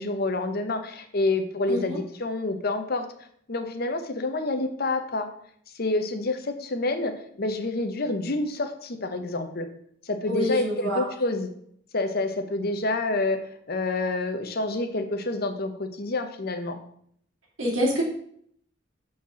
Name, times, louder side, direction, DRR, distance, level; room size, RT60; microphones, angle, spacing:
voice 1, 0.0-3.1 3.5-5.3 5.7-9.7 10.0-11.5 11.9-13.4 13.7-16.8, left 2 dB, 50° left, 7 dB, 0.8 m, -28 dB
voice 2, 1.7-2.0 10.3-11.1 17.6-18.0, equal, 75° right, -4 dB, 2.6 m, -26 dB
5.6 x 4.4 x 6.3 m, 0.65 s
head